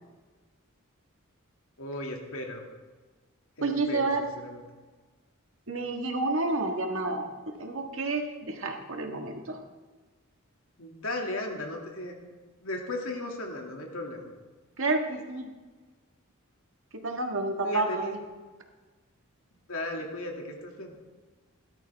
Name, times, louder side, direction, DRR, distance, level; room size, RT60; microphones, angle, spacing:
voice 1, 1.8-2.6 3.6-4.6 10.8-12.1 12.6-14.3 17.6-18.1 19.7-20.9, left 1 dB, 75° left, 1 dB, 2.4 m, -36 dB
voice 2, 3.6-4.2 5.7-7.3 7.6-9.6 14.8-15.5 17.0-18.2, right 2 dB, 65° right, 3 dB, 1.7 m, -29 dB
17.5 x 12.5 x 3.5 m, 1.3 s
head